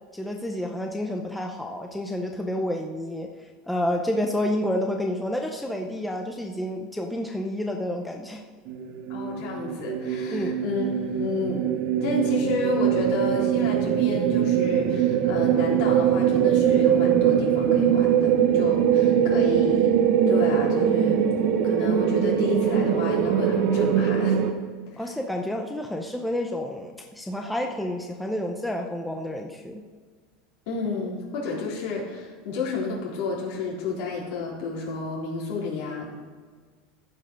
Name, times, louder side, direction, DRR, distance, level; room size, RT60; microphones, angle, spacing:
voice 1, 0.1-3.3 3.7-8.4 10.3-10.6 25.0-29.8, left 1 dB, ahead, 1 dB, 0.6 m, -29 dB
sound 1, 8.7-24.5, right 9 dB, 50° right, 0.8 m, -22 dB
voice 2, 9.1-11.6 12.0-19.9 20.3-21.3 21.6-24.4 25.0-25.1 30.7-36.1, left 3 dB, 60° left, -4 dB, 3.7 m, -31 dB
14.5 x 5.5 x 5.2 m, 1.5 s
supercardioid pair, 165°, 0 cm